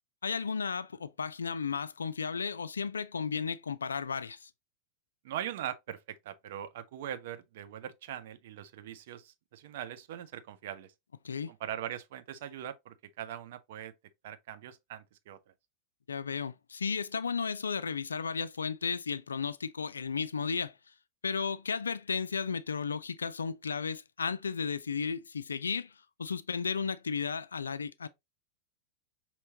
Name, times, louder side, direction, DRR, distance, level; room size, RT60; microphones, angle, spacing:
voice 1, 0.2-4.5 11.2-11.5 16.1-20.7 21.2-25.9 26.2-28.1, left 5 dB, 70° left, 0.3 m, -34 dB
voice 2, 5.2-10.9 11.5-13.9 14.2-15.4, right 10 dB, 55° right, 0.5 m, -41 dB
5.5 x 2.9 x 2.8 m
figure-of-eight pair, 90°, 0 cm